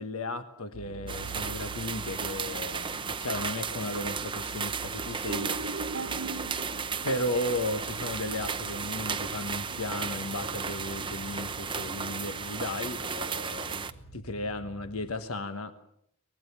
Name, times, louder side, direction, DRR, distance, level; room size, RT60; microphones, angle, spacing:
voice 1, 0.0-5.6 7.0-13.8 14.1-15.7, left 2 dB, 90° left, 9 dB, 1.2 m, -35 dB
sound 1, 0.7-15.1, right 2 dB, 40° left, 7.5 m, -48 dB
sound 2, 1.1-13.9, right 6 dB, 25° right, 0.9 m, -34 dB
sound 3, 5.3-8.0 9.4-10.5, right 3 dB, 80° right, 1.4 m, -40 dB
24.0 x 20.0 x 7.1 m, 0.73 s
head